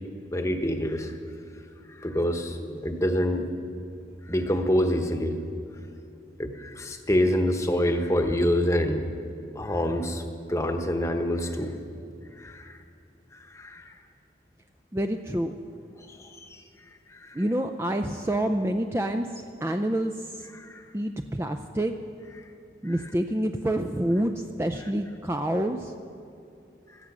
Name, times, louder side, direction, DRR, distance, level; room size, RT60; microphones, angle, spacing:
voice 1, 0.3-1.1 1.9-3.5 4.3-5.4 6.4-9.1 9.5-10.2 10.5-11.7 12.4-12.8 13.3-13.9 16.0-16.6 17.1-17.4 20.5-20.8 22.9-23.0, equal, 15° left, 6 dB, 1.0 m, -27 dB
voice 2, 14.9-15.5 17.3-19.3 19.6-20.5 20.9-21.9 22.8-25.9, right 1 dB, 15° right, 5 dB, 0.4 m, -27 dB
17.0 x 13.0 x 6.1 m, 2.6 s
head